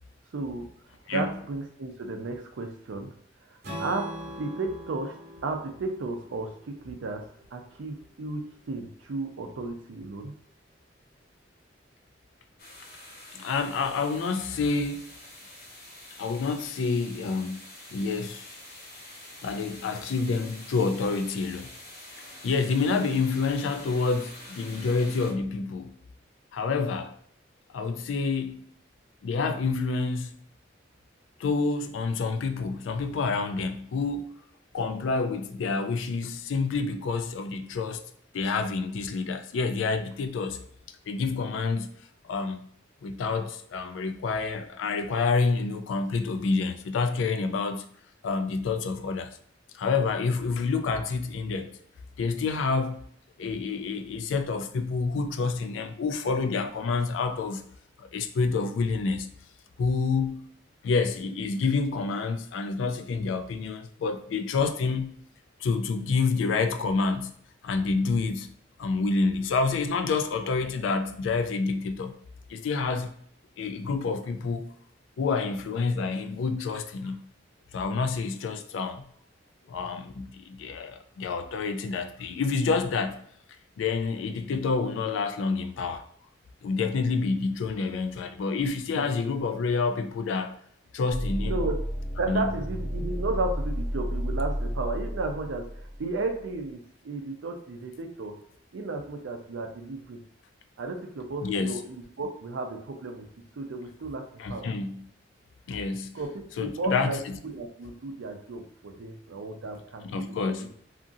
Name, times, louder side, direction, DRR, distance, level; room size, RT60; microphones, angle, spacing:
voice 1, 0.3-0.7 1.1-3.1 3.5-4.1 4.4-5.2 5.4-7.2 7.5-10.3 88.9-89.1 91.4-91.8 92.2-98.4 98.7-100.2 100.8-103.3 103.6-104.7 106.1-110.5, right 3 dB, 90° right, 0.5 m, -34 dB
Strum, 3.6-7.8, equal, 55° right, 0.9 m, -42 dB
sound 1, 12.6-25.3, left 1 dB, 55° left, 0.7 m, -46 dB
voice 2, 13.3-15.1 16.2-17.6 17.9-18.5 19.4-21.7 22.4-26.0 26.5-27.2 27.7-28.6 29.2-30.4 31.4-34.3 34.7-38.1 38.3-40.6 41.1-41.9 42.2-42.6 43.0-47.9 48.2-49.4 49.7-51.7 52.2-53.0 53.4-57.6 58.0-59.3 59.8-60.4 60.8-65.2 65.6-67.3 67.6-68.5 68.8-72.1 72.5-73.2 73.6-74.7 75.2-77.3 77.7-79.0 79.7-83.2 83.8-86.0 86.6-90.5 90.9-91.6 92.3-92.5 101.4-101.8 104.4-105.1 105.7-106.2 106.6-107.3 110.0-110.7, left 4 dB, 85° left, 0.3 m, -28 dB
sound 2, 91.1-96.5, equal, 5° left, 0.6 m, -32 dB
2.8 x 2.5 x 2.6 m
head